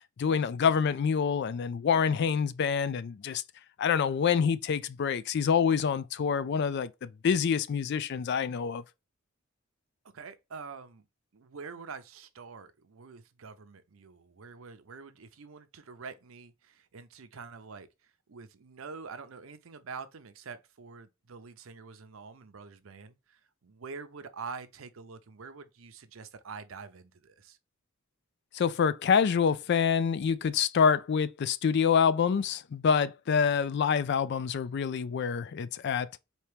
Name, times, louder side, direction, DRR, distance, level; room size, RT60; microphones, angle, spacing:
voice 1, 0.2-3.4 3.8-8.8 28.5-36.1, left 6 dB, 55° left, 0.3 m, -26 dB
voice 2, 10.1-11.1 11.3-27.6, right 5 dB, 70° right, 0.6 m, -46 dB
4.4 x 2.8 x 3.3 m
head